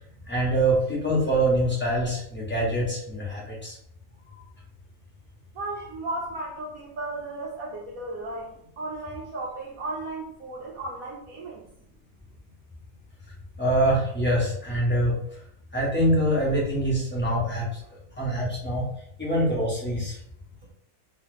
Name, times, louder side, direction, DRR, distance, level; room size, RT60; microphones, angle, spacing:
voice 1, 0.3-3.8 13.6-15.2 15.7-17.8 18.2-18.8 19.2-20.2, right 1 dB, 10° left, -5 dB, 0.9 m, -24 dB
voice 2, 5.5-11.6, right 2 dB, 65° right, -3 dB, 1.0 m, -35 dB
3.1 x 2.8 x 3.1 m, 0.71 s
omnidirectional pair, 1.7 m